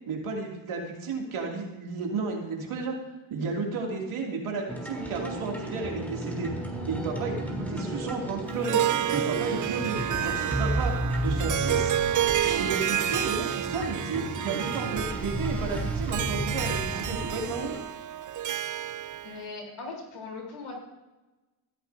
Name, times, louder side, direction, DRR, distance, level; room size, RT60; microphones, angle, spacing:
voice 1, 0.1-3.0 3.3-6.5 6.9-8.8 9.1-11.9 12.5-17.8, right 4 dB, 75° right, -1 dB, 2.8 m, -33 dB
sound 1, 4.7-17.8, right 1 dB, 5° left, 3.5 m, -33 dB
Harp, 8.5-19.4, right 10 dB, 40° right, 0.5 m, -30 dB
voice 2, 19.2-20.7, left 3 dB, 75° left, 0 dB, 3.8 m, -39 dB
16.0 x 13.0 x 2.7 m, 1.1 s
cardioid pair, 70°, 49 cm